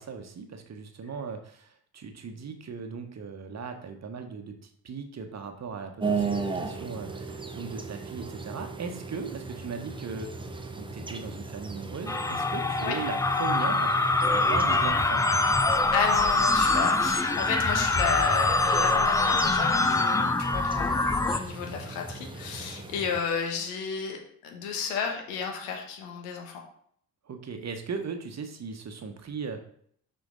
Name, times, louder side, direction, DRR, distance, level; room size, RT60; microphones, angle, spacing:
voice 1, 0.0-13.9 14.3-15.2 19.9-20.3 27.3-29.6, right 5 dB, 35° right, 6 dB, 1.2 m, -38 dB
sound 1, 6.0-23.2, right 4 dB, 10° right, 0.8 m, -37 dB
sound 2, 12.1-21.4, left 3 dB, 10° left, 0.4 m, -24 dB
voice 2, 15.9-26.6, left 6 dB, 65° left, 2 dB, 1.4 m, -32 dB
6.1 x 5.7 x 3.9 m, 0.64 s
figure-of-eight pair, 45°, 49 cm